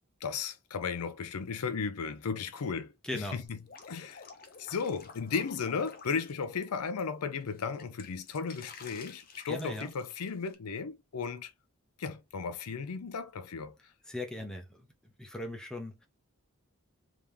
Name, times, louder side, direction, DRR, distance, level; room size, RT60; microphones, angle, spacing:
voice 1, 0.2-3.2 3.5-3.6 3.9-4.2 4.6-11.5 12.0-13.7, left 5 dB, 85° left, 0.5 m, -35 dB
voice 2, 3.0-3.4 9.5-9.9 14.1-16.1, left 1 dB, 5° left, 0.8 m, -39 dB
Drip, 3.5-7.0 7.4-10.5, left 5 dB, 40° left, 0.8 m, -51 dB
3.5 x 2.9 x 3.4 m
head